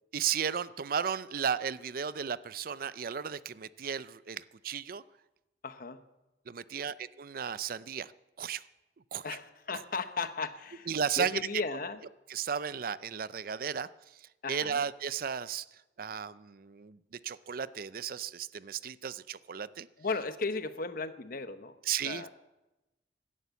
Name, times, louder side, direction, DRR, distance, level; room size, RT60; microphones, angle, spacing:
voice 1, 0.1-5.0 6.5-8.1 8.4-8.6 9.1-9.4 9.7-9.8 10.9-11.5 12.3-19.9 21.8-22.3, right 7 dB, 55° right, 16 dB, 0.5 m, -35 dB
voice 2, 5.6-6.0 9.2-10.9 11.2-12.0 14.4-14.8 20.0-21.7 22.0-22.3, left 4 dB, 55° left, 10 dB, 1.0 m, -35 dB
16.5 x 12.0 x 7.0 m, 1.0 s
head